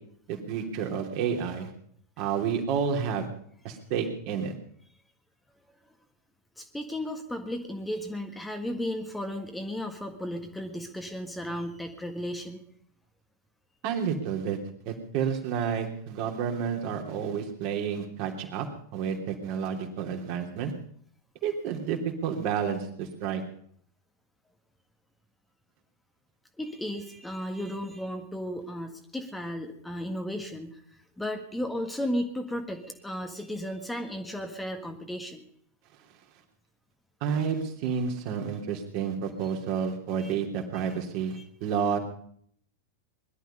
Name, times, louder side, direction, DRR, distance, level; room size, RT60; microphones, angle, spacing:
voice 1, 0.3-1.7 2.2-3.3 3.6-4.5 13.8-14.6 14.8-18.7 18.9-20.7 21.4-23.4 37.2-42.0, right 7 dB, 45° right, 3 dB, 3.0 m, -30 dB
voice 2, 6.6-12.6 26.6-30.8 31.2-35.4 40.2-40.3 41.3-41.4, equal, 5° left, 4 dB, 1.7 m, -34 dB
21.0 x 12.0 x 5.5 m, 0.63 s
figure-of-eight pair, 90°, 0 cm